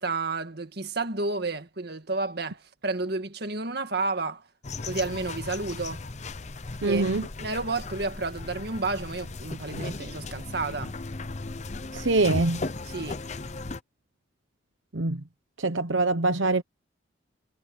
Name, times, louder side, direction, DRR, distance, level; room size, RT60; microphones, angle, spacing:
voice 1, 0.0-4.4 4.8-6.0 6.8-7.1 7.4-10.9 12.8-13.2, right 3 dB, 55° right, 1.9 m, -31 dB
sound 1, 4.6-13.8, left 3 dB, 35° left, 0.7 m, -36 dB
voice 2, 6.8-7.3 11.9-12.6 14.9-15.2 15.6-16.6, right 2 dB, 80° right, 1.0 m, -24 dB
head